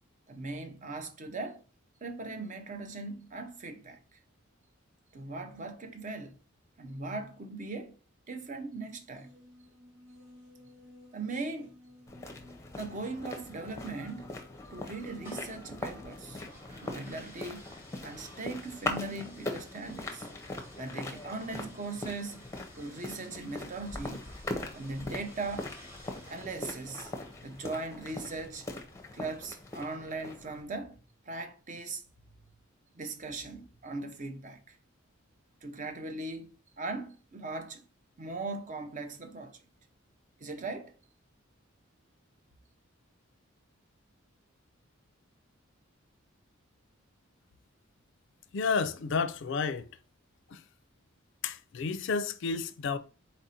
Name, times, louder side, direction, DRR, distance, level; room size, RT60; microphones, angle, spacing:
voice 1, 0.3-1.6 2.0-4.0 5.1-6.4 6.8-8.0 8.3-9.3 11.1-11.7 12.8-14.3 14.7-16.4 16.8-17.7 18.0-20.3 20.8-22.4 22.8-24.2 24.7-25.7 26.3-27.1 27.4-28.7 29.1-31.0 31.3-32.0 32.9-34.8 35.6-37.8 38.2-39.6 40.4-40.9, right 3 dB, 40° right, 0.6 m, -39 dB
sound 1, 9.1-16.3, left 1 dB, 90° right, 1.7 m, -56 dB
sound 2, 12.1-30.6, left 2 dB, 15° left, 0.6 m, -41 dB
sound 3, 14.8-30.0, left 1 dB, 10° right, 1.1 m, -56 dB
voice 2, 48.5-49.9 50.5-50.6 51.4-53.0, left 5 dB, 60° left, 0.4 m, -31 dB
4.1 x 2.6 x 4.1 m
head